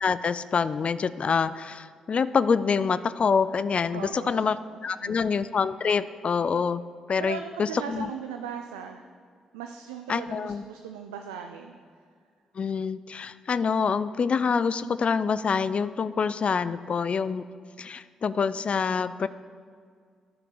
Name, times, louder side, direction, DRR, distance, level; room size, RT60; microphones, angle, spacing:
voice 1, 0.0-4.6 4.8-6.8 7.1-8.1 10.1-10.6 12.6-17.4 17.8-19.3, left 5 dB, 50° left, 15 dB, 0.3 m, -26 dB
voice 2, 3.9-4.5 4.8-5.2 7.2-9.0 9.5-11.8, right 8 dB, 90° right, 5 dB, 0.3 m, -38 dB
10.0 x 5.7 x 3.9 m, 2.1 s
hypercardioid pair, 40°, 3 cm